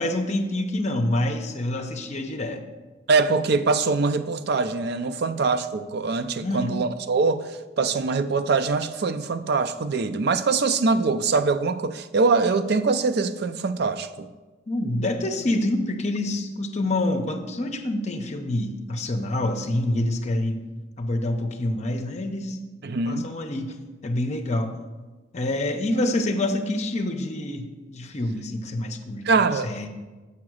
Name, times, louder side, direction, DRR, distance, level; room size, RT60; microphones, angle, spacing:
voice 1, 0.0-2.6 6.4-6.8 14.7-20.6 21.0-22.6 23.1-24.8 25.3-29.9, left 1 dB, 35° left, 0.7 m, -27 dB
voice 2, 3.1-14.3 22.8-23.3 29.3-29.7, right 4 dB, 55° right, 0.4 m, -23 dB
7.2 x 4.8 x 6.3 m
head